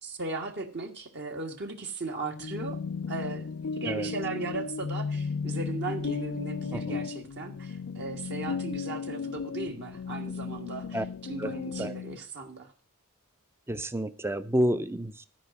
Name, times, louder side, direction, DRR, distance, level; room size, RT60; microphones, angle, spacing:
voice 1, 0.0-2.8 3.1-3.5 3.7-11.0 11.3-12.7, right 3 dB, 50° right, 3 dB, 1.5 m, -37 dB
sound 1, 2.2-12.2, left 5 dB, 60° left, 0.4 m, -35 dB
voice 2, 6.7-7.1 10.9-11.0 11.4-12.0 13.7-15.3, right 1 dB, 10° right, 13 dB, 0.6 m, -30 dB
13.5 x 5.1 x 7.5 m, 0.37 s
head